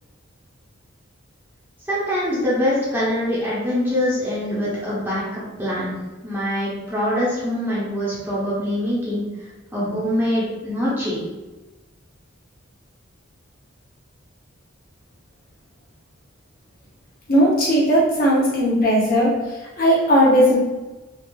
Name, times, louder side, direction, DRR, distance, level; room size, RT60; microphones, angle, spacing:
voice 1, 1.9-5.9 6.2-9.2 9.7-11.2, left 1 dB, 10° right, -9 dB, 1.0 m, -24 dB
voice 2, 17.3-20.6, equal, 45° left, -6 dB, 0.9 m, -17 dB
3.4 x 2.7 x 2.5 m, 1.1 s
head